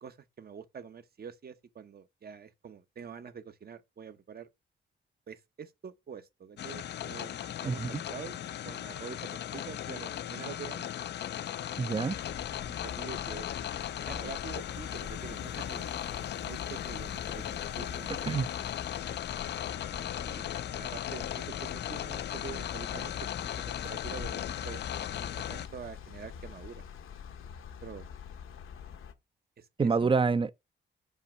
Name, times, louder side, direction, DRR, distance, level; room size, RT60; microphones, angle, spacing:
voice 1, 0.0-4.5 5.3-10.9 12.6-13.5 14.0-18.7 20.2-26.8 27.8-28.1 29.6-30.1, right 7 dB, 50° right, 1.0 m, -46 dB
sound 1, 6.6-25.7, left 11 dB, 60° left, 0.4 m, -37 dB
voice 2, 11.8-12.2 18.3-18.5 29.8-30.5, right 4 dB, 25° right, 0.5 m, -26 dB
sound 2, 12.1-29.1, left 7 dB, 80° left, 1.1 m, -44 dB
5.6 x 5.3 x 5.9 m
cardioid pair, 115°, 20 cm